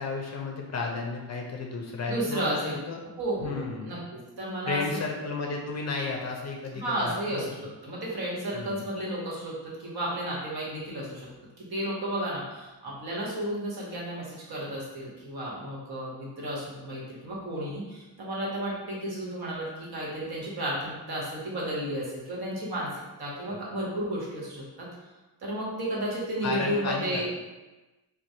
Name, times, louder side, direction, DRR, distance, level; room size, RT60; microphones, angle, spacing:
voice 1, 0.0-3.0 3.4-4.0 4.7-7.5 8.5-8.8 23.5-23.6 26.4-27.2, left 4 dB, 45° left, 0 dB, 0.4 m, -33 dB
voice 2, 2.1-2.8 3.2-4.0 4.4-5.0 6.7-7.4 7.8-9.5 9.8-11.0 11.7-12.4 13.0-14.2 14.5-17.8 18.2-19.6 19.9-22.9 23.2-24.6 25.4-27.2, right 1 dB, 70° right, -5 dB, 1.1 m, -32 dB
4.5 x 2.1 x 2.7 m, 1.1 s
wide cardioid pair, 180°, 39 cm